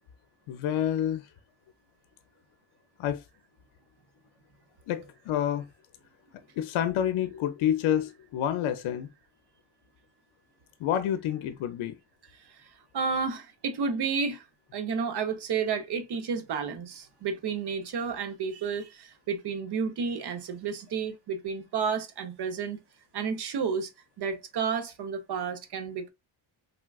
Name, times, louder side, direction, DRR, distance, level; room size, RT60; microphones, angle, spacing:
voice 1, 0.5-1.3 3.0-3.2 4.9-5.6 6.6-9.1 10.8-11.9, left 10 dB, 75° left, 0.6 m, -28 dB
voice 2, 12.3-14.5 14.7-22.8 23.1-23.9 24.2-26.1, right 5 dB, 55° right, 0.7 m, -31 dB
3.6 x 2.3 x 2.3 m
cardioid pair, 80°, 50 cm